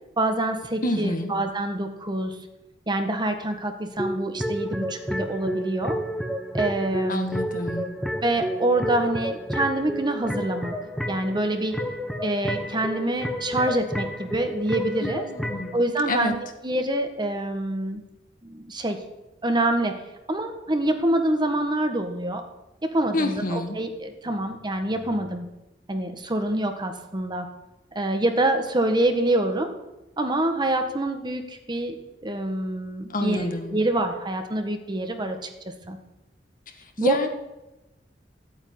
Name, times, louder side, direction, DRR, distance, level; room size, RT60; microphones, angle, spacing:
voice 1, 0.2-2.4 2.9-6.0 6.5-7.4 8.2-10.7 11.1-11.8 12.2-15.3 15.7-16.3 16.6-18.0 18.4-19.0 19.4-20.0 20.3-22.4 22.8-25.5 25.9-27.5 27.9-29.7 30.2-31.9 32.2-35.4 35.9-36.0 37.0-37.2, right 1 dB, 25° right, 6 dB, 1.7 m, -26 dB
voice 2, 0.8-1.3 7.1-7.9 15.0-15.8 16.1-16.3 23.1-23.8 33.1-33.8 37.0-37.3, left 1 dB, 50° left, 5 dB, 1.9 m, -28 dB
sound 1, 3.9-15.7, equal, ahead, 1.3 m, -31 dB
14.5 x 9.1 x 9.6 m, 0.97 s
head